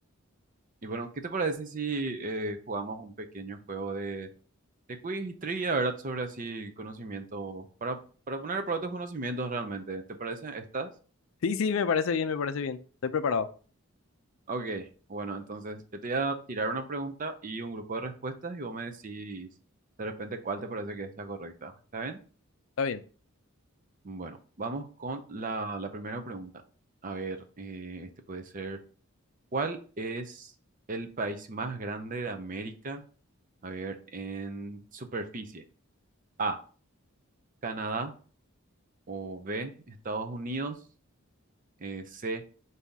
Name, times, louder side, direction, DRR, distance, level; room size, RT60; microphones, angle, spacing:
voice 1, 0.8-4.3 5.0-8.0 8.3-10.9 14.5-19.5 20.0-22.2 24.0-26.5 27.0-28.8 29.5-30.5 30.9-33.0 33.6-35.6 36.4-36.6 37.6-38.1 39.1-40.8 41.8-42.4, right 3 dB, 40° right, 6 dB, 0.6 m, -35 dB
voice 2, 11.4-13.5 22.8-23.0, left 5 dB, 65° left, 12 dB, 0.4 m, -28 dB
5.5 x 2.7 x 3.5 m, 0.39 s
head